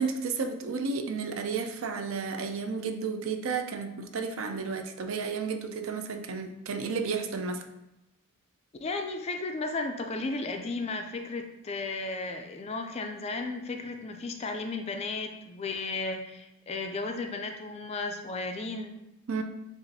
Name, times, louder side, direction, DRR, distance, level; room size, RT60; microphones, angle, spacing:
voice 1, 0.0-7.6 19.3-19.4, right 5 dB, 65° right, 6 dB, 0.4 m, -32 dB
voice 2, 8.8-18.9, left 3 dB, 30° left, 5 dB, 0.3 m, -34 dB
6.8 x 2.5 x 2.7 m, 0.90 s
head